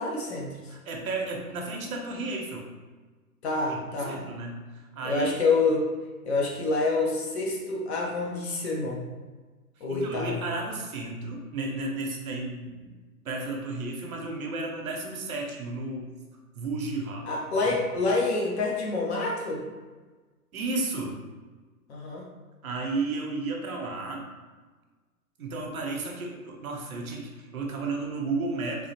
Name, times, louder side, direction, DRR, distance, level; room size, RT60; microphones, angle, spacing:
voice 1, 0.0-0.7 3.4-4.2 5.0-5.9 6.2-9.0 9.8-10.4 17.3-19.6 21.9-22.3, left 3 dB, 45° left, -2 dB, 0.8 m, -27 dB
voice 2, 0.7-2.7 3.7-5.3 9.8-12.9 13.2-16.1 16.5-17.3 17.6-18.0 20.5-21.2 22.6-24.3 25.4-28.9, right 3 dB, 65° right, 0 dB, 0.9 m, -33 dB
3.7 x 2.8 x 2.8 m, 1.3 s
figure-of-eight pair, 120°, 46 cm